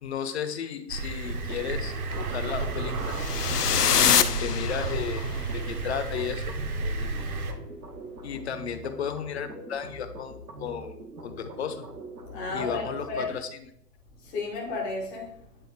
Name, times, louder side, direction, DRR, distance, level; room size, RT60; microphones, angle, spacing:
voice 1, 0.0-3.2 3.8-6.5 8.2-11.9 12.5-13.6, left 7 dB, 45° left, 9 dB, 0.8 m, -34 dB
sound 1, 0.9-7.5, right 3 dB, 60° right, 1.1 m, -32 dB
sound 2, 1.2-13.3, right 1 dB, 85° right, 1.3 m, -43 dB
sound 3, 3.1-5.3, left 8 dB, 75° left, 0.7 m, -24 dB
voice 2, 12.3-13.3 14.2-15.3, left 3 dB, 10° left, -3 dB, 0.6 m, -32 dB
9.1 x 3.7 x 3.6 m, 0.73 s
figure-of-eight pair, 140°, 48 cm